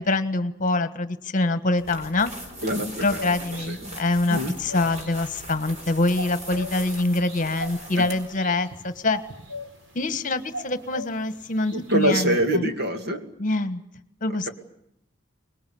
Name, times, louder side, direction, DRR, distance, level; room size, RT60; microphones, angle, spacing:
voice 1, 0.0-2.3 3.0-9.2 9.9-12.7 13.4-13.8 14.2-14.5, left 2 dB, 40° left, 12 dB, 1.5 m, -25 dB
sound 1, 1.8-8.4, right 1 dB, 35° right, 4.8 m, -40 dB
voice 2, 2.6-3.2 3.7-4.5 8.0-8.1 11.7-13.2, right 1 dB, 55° right, 6 dB, 2.5 m, -25 dB
sound 2, 2.6-12.5, left 1 dB, 80° right, 5.2 m, -41 dB
25.0 x 21.0 x 8.6 m, 0.80 s
head